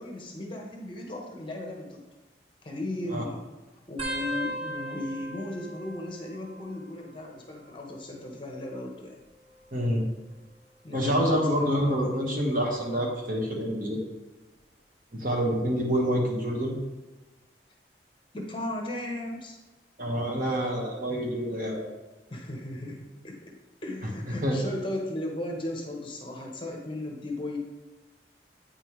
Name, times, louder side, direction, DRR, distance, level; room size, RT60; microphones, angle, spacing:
voice 1, 0.0-2.0 2.6-3.4 3.9-9.2 10.8-12.1 18.3-19.6 22.3-23.5 23.8-27.6, left 1 dB, 30° left, 0 dB, 1.0 m, -36 dB
sound 1, 4.0-7.2 7.4-8.0 9.0-10.5 11.1-11.5 12.7-13.1 14.6-14.7, right 1 dB, 30° right, 0.9 m, -39 dB
voice 2, 9.7-10.0 10.9-14.0 15.1-16.7 20.0-21.8 24.4-24.6, equal, 50° right, -1 dB, 1.4 m, -27 dB
8.7 x 5.4 x 3.1 m, 1.1 s
head